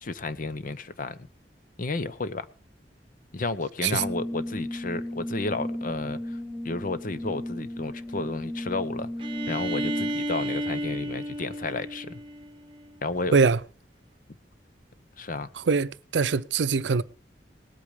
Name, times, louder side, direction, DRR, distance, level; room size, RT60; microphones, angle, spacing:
voice 1, 0.0-1.3 1.8-2.5 3.3-6.4 6.6-9.1 9.5-12.2 13.0-13.4 15.2-15.5, left 3 dB, 50° left, 0.8 m, -32 dB
Brass instrument, 4.0-10.4, left 1 dB, 10° left, 1.5 m, -35 dB
Bowed string instrument, 9.2-12.9, right 1 dB, 30° right, 1.1 m, -32 dB
voice 2, 15.5-17.0, right 5 dB, 80° right, 0.5 m, -23 dB
19.0 x 8.6 x 5.0 m
head